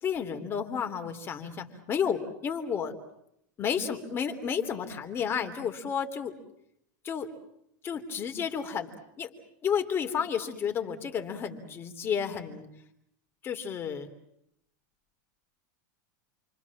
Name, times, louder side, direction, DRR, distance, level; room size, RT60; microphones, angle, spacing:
voice 1, 0.0-3.0 3.6-6.4 7.0-7.3 7.8-8.9 9.2-9.3 9.6-12.7 13.4-14.1, left 7 dB, 25° left, 6 dB, 3.2 m, -31 dB
29.0 x 24.5 x 7.3 m, 0.76 s
supercardioid pair, 150°, 10 cm